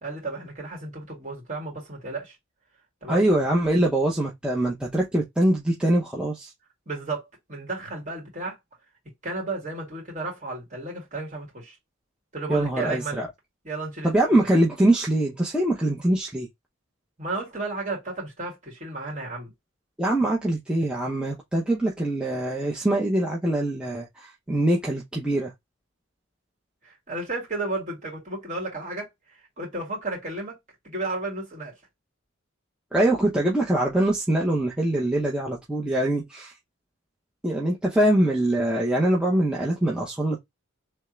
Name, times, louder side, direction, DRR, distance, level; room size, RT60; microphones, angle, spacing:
voice 1, 0.0-2.3 3.0-3.3 6.9-8.6 9.2-11.8 12.3-13.2 13.6-14.5 17.2-19.5 26.8-29.1 29.6-30.6 30.8-31.7, right 2 dB, 35° right, 2.7 m, -33 dB
voice 2, 3.1-6.5 12.5-13.3 14.0-16.5 20.0-25.5 32.9-36.5 37.4-40.4, right 1 dB, 5° right, 0.8 m, -23 dB
3.6 x 3.3 x 3.1 m
head